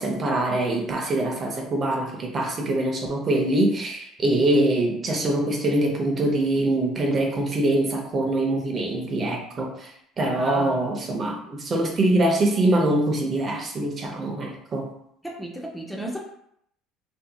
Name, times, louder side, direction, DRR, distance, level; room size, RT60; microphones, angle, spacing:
voice 1, 0.0-14.9, right 1 dB, 40° right, 1 dB, 0.7 m, -24 dB
voice 2, 10.4-10.8 15.2-16.2, right 1 dB, ahead, -1 dB, 0.5 m, -34 dB
2.6 x 2.6 x 2.3 m, 0.71 s
supercardioid pair, 95°, 0 cm